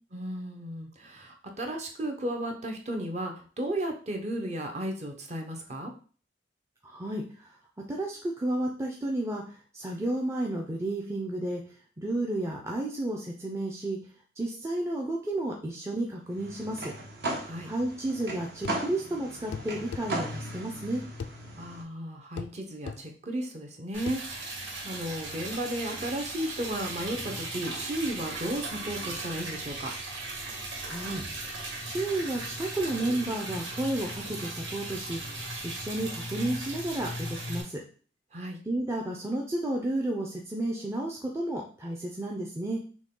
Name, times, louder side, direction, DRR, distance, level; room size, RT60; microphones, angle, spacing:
voice 1, 0.1-5.9 17.4-17.7 21.6-29.9 38.3-38.6, right 1 dB, 40° right, 3 dB, 0.8 m, -34 dB
voice 2, 6.8-7.6 7.9-11.6 12.0-14.0 14.4-16.9 17.7-21.0 30.8-31.2 31.8-35.2 35.6-37.8 38.7-42.8, right 1 dB, 15° right, -1 dB, 0.5 m, -32 dB
sound 1, 16.3-21.8, right 1 dB, 60° right, 1.1 m, -37 dB
sound 2, 18.6-18.9 19.5-20.1 21.2-21.4 22.4-22.6 22.9-23.0 24.1-24.2, left 5 dB, 75° left, 0.3 m, -37 dB
Liquid, 23.9-37.6, right 2 dB, 80° right, 1.8 m, -37 dB
6.1 x 2.2 x 3.7 m, 0.41 s
head